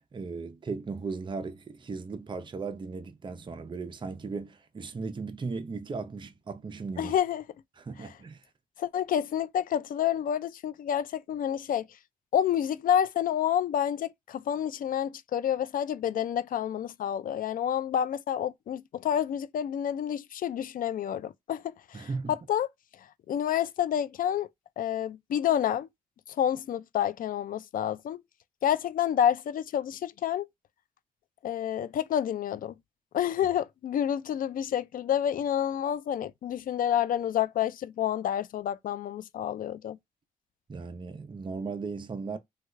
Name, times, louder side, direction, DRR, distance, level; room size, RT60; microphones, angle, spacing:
voice 1, 0.0-7.1 7.8-8.5 21.9-22.3 40.7-42.4, right 4 dB, 30° right, 0.5 m, -37 dB
voice 2, 7.0-7.4 8.0-8.1 8.8-11.9 12.3-21.6 21.9-22.7 23.3-24.5 24.8-25.9 26.4-28.2 28.6-30.5 31.4-32.7 33.1-40.0, left 10 dB, 65° left, 0.4 m, -29 dB
3.2 x 2.3 x 3.2 m
cardioid pair, 85°, 15 cm